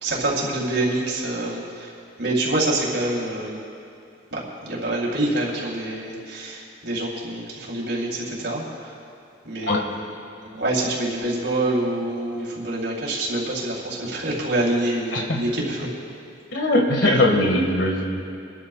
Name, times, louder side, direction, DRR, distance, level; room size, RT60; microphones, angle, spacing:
voice 1, 0.0-1.9 2.2-3.6 4.3-8.9 9.4-15.9, right 1 dB, 70° right, -4 dB, 3.5 m, -26 dB
voice 2, 15.1-15.4 16.5-18.2, left 1 dB, 70° left, 1 dB, 1.8 m, -20 dB
26.5 x 12.5 x 2.4 m, 2.7 s
head